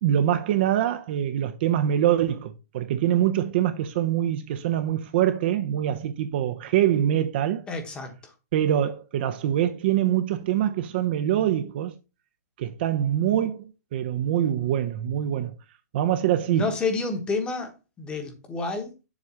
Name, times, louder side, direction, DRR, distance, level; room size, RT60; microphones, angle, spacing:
voice 1, 0.0-7.6 8.5-11.9 12.6-13.6 13.9-15.6 15.9-16.6, right 11 dB, 40° right, 0.6 m, -24 dB
voice 2, 7.7-8.3 16.5-18.9, left 3 dB, 10° left, 1.1 m, -29 dB
7.3 x 3.1 x 6.0 m
hypercardioid pair, 160°, 9 cm